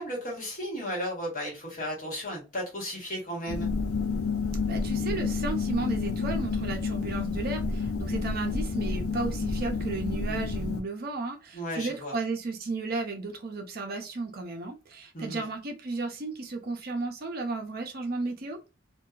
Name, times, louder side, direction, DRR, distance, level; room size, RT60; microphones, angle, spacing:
voice 1, 0.0-3.7 11.5-12.2 15.1-15.4, equal, 40° left, 1.2 m, -34 dB
sound 1, 3.5-10.8, left 4 dB, 90° left, 0.5 m, -30 dB
voice 2, 4.7-18.6, right 3 dB, 45° right, 0.5 m, -34 dB
2.7 x 2.2 x 2.3 m
head